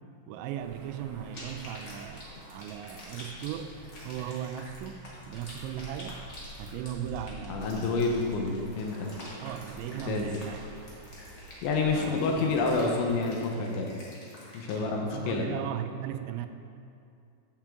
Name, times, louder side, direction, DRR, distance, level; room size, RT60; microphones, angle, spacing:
voice 1, 0.3-3.8 4.0-6.2 6.6-8.0 9.4-10.6 11.9-12.6 14.7-16.5, right 10 dB, 85° right, 9 dB, 2.9 m, -38 dB
sound 1, 0.6-13.2, equal, 60° right, 1.2 m, -48 dB
sound 2, 1.3-14.7, left 1 dB, 60° left, 1.1 m, -48 dB
voice 2, 7.5-9.1 10.1-10.3 11.6-14.0 14.5-15.5, left 3 dB, 80° left, 1 dB, 3.1 m, -28 dB
14.5 x 7.3 x 3.7 m, 2.5 s
omnidirectional pair, 5.4 m